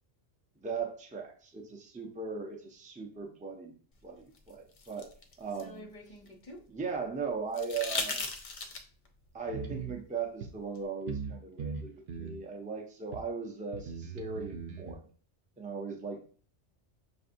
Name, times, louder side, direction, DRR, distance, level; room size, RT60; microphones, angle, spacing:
voice 1, 0.6-3.7 4.0-5.1 5.4-5.9 6.7-8.2 9.3-15.1 15.6-16.2, right 5 dB, 10° right, 3 dB, 0.4 m, -38 dB
sound 1, 4.4-6.6 7.5-9.1 10.8-10.9, left 3 dB, 45° left, 0.5 m, -38 dB
sound 2, 9.5-9.9 10.4-10.5 11.1-11.3 11.6-12.4 13.1-13.2 13.7-14.9, right 6 dB, 55° right, 0.7 m, -39 dB
6.3 x 2.6 x 2.6 m, 0.42 s
omnidirectional pair, 1.2 m